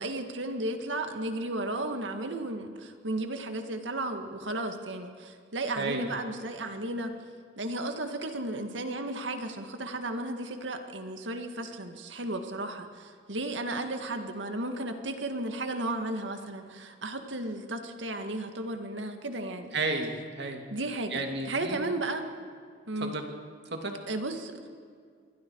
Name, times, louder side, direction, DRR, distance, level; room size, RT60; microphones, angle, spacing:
voice 1, 0.0-7.1 7.6-19.8 20.7-22.3 22.9-23.2 24.1-24.7, right 2 dB, 85° right, 6 dB, 2.0 m, -34 dB
voice 2, 5.8-6.1 19.7-20.6 21.1-21.9 23.0-23.2 23.7-24.0, right 3 dB, 65° right, 3 dB, 2.6 m, -32 dB
27.5 x 23.0 x 4.8 m, 2.1 s
head